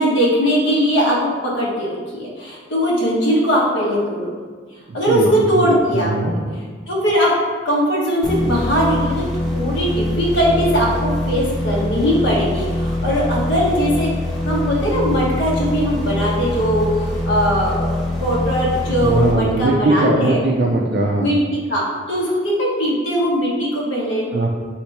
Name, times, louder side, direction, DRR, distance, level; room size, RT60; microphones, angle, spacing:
voice 1, 0.0-4.3 4.9-6.1 6.5-7.3 7.6-14.1 14.4-20.4 21.2-21.8 22.1-24.3, equal, 75° left, -4 dB, 1.1 m, -20 dB
voice 2, 5.5-6.4 19.0-21.3 24.3-24.5, right 2 dB, 55° right, -1 dB, 0.4 m, -19 dB
sound 1, 8.2-19.9, left 1 dB, ahead, 0.7 m, -23 dB
3.1 x 3.1 x 4.5 m, 1.5 s
head